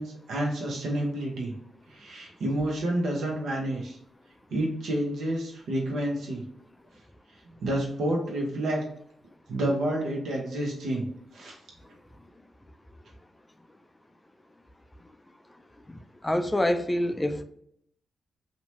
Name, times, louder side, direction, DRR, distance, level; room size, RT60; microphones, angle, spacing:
voice 1, 0.0-1.5 1.9-4.0 4.5-6.4 7.6-8.9 9.5-11.1 11.3-11.6, right 1 dB, 80° right, -1 dB, 0.7 m, -29 dB
voice 2, 16.2-17.4, left 1 dB, 20° left, 8 dB, 0.3 m, -26 dB
2.8 x 2.1 x 2.9 m, 0.69 s
supercardioid pair, 45°, 0 cm